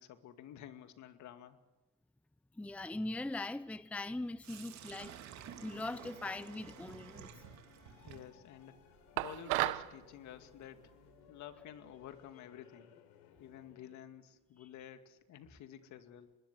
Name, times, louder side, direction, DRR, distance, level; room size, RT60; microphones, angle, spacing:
voice 1, 0.0-1.6 8.0-8.8 9.2-10.9 11.3-13.0 13.4-16.4, left 10 dB, 60° left, 2.3 m, -51 dB
voice 2, 2.6-5.2 5.6-7.3 14.6-14.7, left 2 dB, 5° left, 0.7 m, -41 dB
Sink (filling or washing), 4.4-12.3, right 9 dB, 55° right, 2.9 m, -54 dB
sound 1, 5.4-14.0, left 8 dB, 75° left, 3.9 m, -62 dB
sound 2, 9.2-9.9, right 19 dB, 75° right, 1.1 m, -33 dB
25.0 x 20.5 x 8.1 m
supercardioid pair, 85°, 33 cm